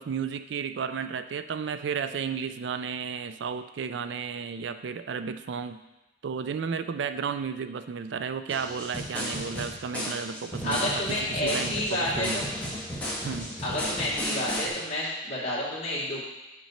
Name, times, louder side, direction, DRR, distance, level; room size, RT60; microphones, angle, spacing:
voice 1, 0.0-5.8 6.2-12.4 13.2-13.5, right 6 dB, 80° right, 11 dB, 0.4 m, -33 dB
sound 1, 8.5-14.7, equal, 10° left, 1.5 m, -34 dB
voice 2, 10.6-12.4 13.6-16.2, left 1 dB, 35° left, -7 dB, 2.3 m, -29 dB
6.1 x 6.0 x 4.3 m, 1.0 s
head